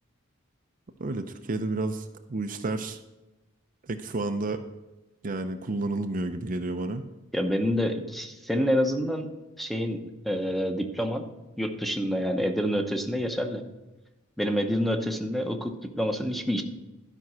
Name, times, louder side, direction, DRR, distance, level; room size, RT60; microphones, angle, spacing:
voice 1, 1.0-3.0 3.8-4.6 5.2-7.0, right 2 dB, 40° right, 7 dB, 0.6 m, -31 dB
voice 2, 7.3-9.3 9.6-10.0 10.2-11.2 11.6-13.6 14.4-16.6, equal, ahead, 5 dB, 0.8 m, -27 dB
12.5 x 5.3 x 6.0 m, 1.0 s
head